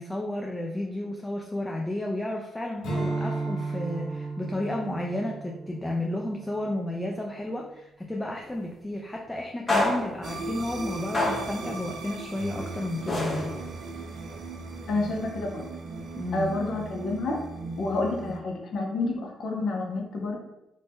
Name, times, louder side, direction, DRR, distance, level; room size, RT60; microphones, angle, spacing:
voice 1, 0.0-13.5 16.1-16.5, left 1 dB, 10° left, 0 dB, 0.3 m, -32 dB
Strum, 2.8-7.5, right 3 dB, 90° left, 0.8 m, -34 dB
sound 1, 8.4-8.6 9.7-10.3 11.1-11.7 13.1-13.9, left 2 dB, 30° left, 0.8 m, -28 dB
sound 2, 10.2-18.4, right 3 dB, 65° right, 0.4 m, -38 dB
voice 2, 14.9-15.6 16.3-17.4 17.8-20.4, left 2 dB, 60° left, 1 dB, 0.6 m, -29 dB
2.6 x 2.1 x 3.4 m, 0.90 s
cardioid pair, 90°, 0 cm